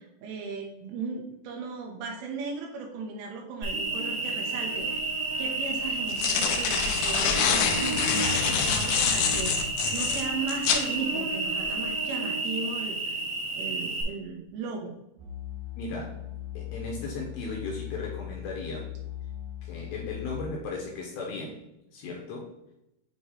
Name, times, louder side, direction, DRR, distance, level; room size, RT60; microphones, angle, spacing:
voice 1, 0.0-5.1 5.4-13.2 13.5-14.9, right 4 dB, 85° right, 1 dB, 3.8 m, -37 dB
Cricket, 3.6-14.0, right 3 dB, 50° right, 1.5 m, -31 dB
sound 1, 4.8-4.9 5.9-10.9, left 7 dB, 90° left, 3.2 m, -26 dB
sound 2, 15.2-20.4, left 13 dB, 70° right, 2.7 m, -39 dB
voice 2, 15.8-16.2 16.5-18.9 19.6-21.6 21.9-22.5, left 3 dB, 70° left, -2 dB, 2.5 m, -36 dB
8.7 x 3.2 x 4.0 m, 0.87 s
omnidirectional pair, 5.5 m